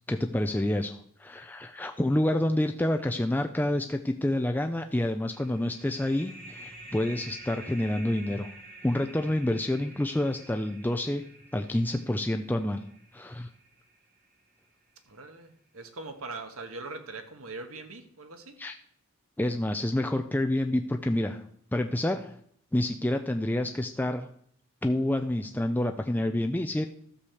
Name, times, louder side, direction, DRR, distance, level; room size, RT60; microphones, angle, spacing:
voice 1, 0.1-8.5 8.8-11.2 11.5-12.8 13.1-13.5 18.6-18.7 19.4-21.4 21.7-22.3 22.7-24.3 24.8-26.9, left 1 dB, 10° left, 5 dB, 0.4 m, -28 dB
sound 1, 5.3-14.6, right 2 dB, 40° right, 1.6 m, -49 dB
voice 2, 15.1-18.6, right 3 dB, 80° right, 6 dB, 1.5 m, -41 dB
13.0 x 4.9 x 7.0 m, 0.65 s
head